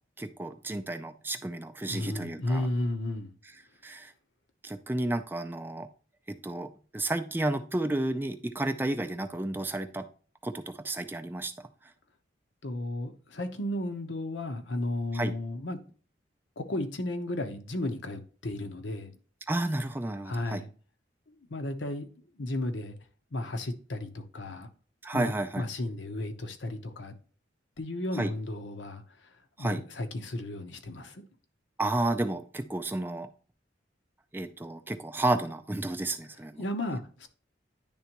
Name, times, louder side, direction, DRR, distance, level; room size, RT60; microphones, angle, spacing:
voice 1, 0.2-2.7 3.8-4.1 4.6-5.9 6.3-10.1 10.4-11.9 15.1-15.3 19.5-20.6 25.0-25.7 28.1-28.3 29.6-29.8 31.8-33.3 34.3-36.6, right 2 dB, 10° right, 0.3 m, -32 dB
voice 2, 1.9-3.3 12.6-15.8 16.6-19.1 20.3-20.7 21.3-22.1 22.4-23.0 23.3-24.7 25.1-27.1 27.8-31.2 36.6-37.3, left 1 dB, 75° left, 0.9 m, -34 dB
10.5 x 3.5 x 2.9 m
head